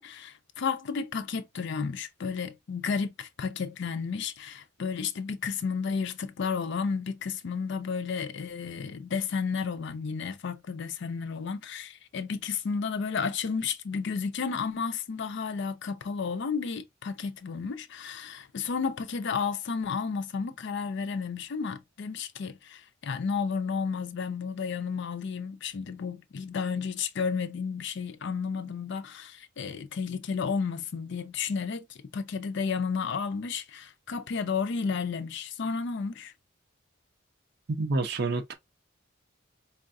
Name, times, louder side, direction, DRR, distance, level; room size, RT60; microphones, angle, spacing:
voice 1, 0.0-36.3, left 5 dB, 60° left, 0.4 m, -32 dB
voice 2, 37.8-38.5, right 3 dB, 55° right, 0.6 m, -28 dB
4.5 x 2.4 x 2.5 m
head